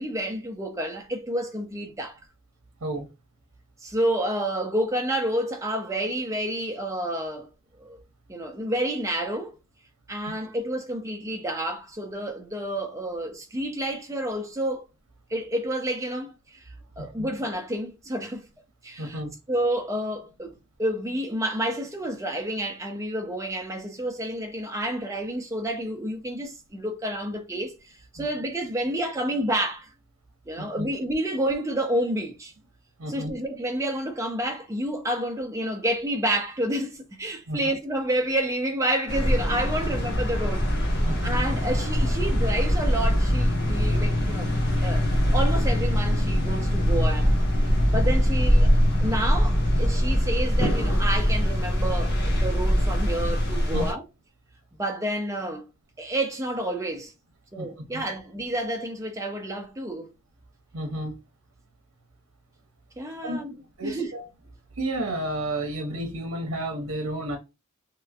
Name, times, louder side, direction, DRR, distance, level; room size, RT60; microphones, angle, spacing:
voice 1, 0.0-2.2 3.8-7.5 7.8-8.0 8.3-9.5 10.1-14.8 15.3-16.6 17.0-18.5 18.8-19.2 19.5-27.7 28.1-29.9 30.5-32.5 33.1-40.6 41.2-44.5 44.8-47.3 47.9-54.0 54.8-55.7 56.0-57.1 57.5-60.1 63.0-64.1, right 1 dB, 15° right, 0.5 m, -29 dB
voice 2, 19.0-19.3 28.2-28.3 30.6-30.9 33.0-33.3 37.5-37.6 41.0-41.4 47.9-48.0 53.7-53.8 57.6-57.7 57.9-58.0 60.7-61.2 63.2-63.4 63.8-64.2 64.8-67.4, right 1 dB, 70° right, 0.8 m, -31 dB
sound 1, 39.1-53.9, equal, 50° left, 1.1 m, -22 dB
3.1 x 3.0 x 2.4 m
head